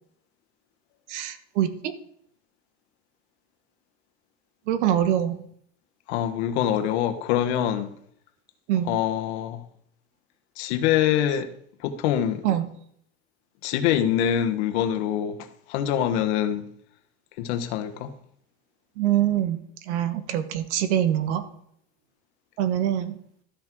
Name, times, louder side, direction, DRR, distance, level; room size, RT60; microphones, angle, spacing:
voice 1, 1.1-1.9 4.7-5.4 8.7-8.9 12.4-12.6 19.0-19.6 19.9-21.5 22.6-23.2, right 11 dB, 85° right, 1.2 m, -24 dB
voice 2, 6.1-7.9 8.8-9.6 10.6-11.5 11.8-12.4 13.6-16.6 17.4-18.1, left 10 dB, 70° left, 1.2 m, -24 dB
13.0 x 6.0 x 4.5 m
supercardioid pair, 150°, 34 cm